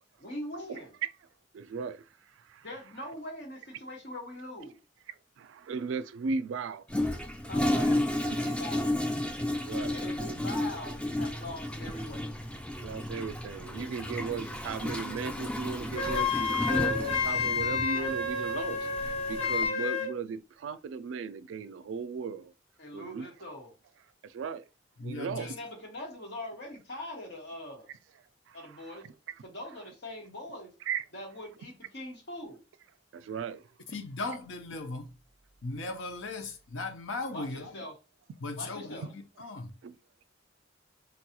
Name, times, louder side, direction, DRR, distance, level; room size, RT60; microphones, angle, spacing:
voice 1, 0.2-0.9 2.6-4.8 7.5-9.0 9.9-12.3 22.8-23.7 25.4-27.9 28.5-29.1 29.4-30.7 31.1-32.6 37.3-37.9 38.5-39.1, left 1 dB, 60° left, 1.2 m, -42 dB
voice 2, 1.5-2.0 2.5-2.7 5.4-6.8 9.7-9.9 12.8-22.5 22.9-23.3 24.2-24.6 25.0-25.5 28.5-28.6 30.9-31.0 33.1-33.6 39.8-40.0, right 5 dB, 80° right, 0.3 m, -36 dB
Toilet flush, 6.9-19.7, left 1 dB, 5° left, 0.3 m, -33 dB
Wind instrument woodwind instrument, 15.9-20.1, left 5 dB, 35° left, 0.7 m, -30 dB
voice 3, 25.0-25.6 33.9-35.1 35.6-37.7 38.4-39.7, left 3 dB, 90° left, 0.6 m, -37 dB
3.9 x 2.3 x 2.8 m
head